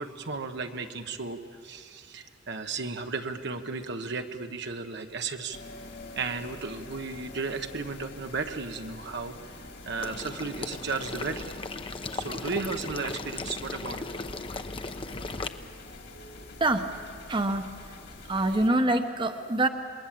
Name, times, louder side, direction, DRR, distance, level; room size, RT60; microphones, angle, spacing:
voice 1, 0.0-5.6 6.1-9.3 9.8-11.6 12.1-14.1, right 4 dB, 65° right, 6 dB, 1.2 m, -34 dB
sound 1, 5.5-18.7, left 2 dB, 60° left, 2.5 m, -46 dB
Water / Liquid, 10.0-15.5, left 3 dB, 30° left, 0.8 m, -37 dB
voice 2, 17.3-18.0 18.3-19.7, right 2 dB, 25° right, 6 dB, 1.0 m, -25 dB
27.0 x 21.5 x 7.7 m, 2.3 s
head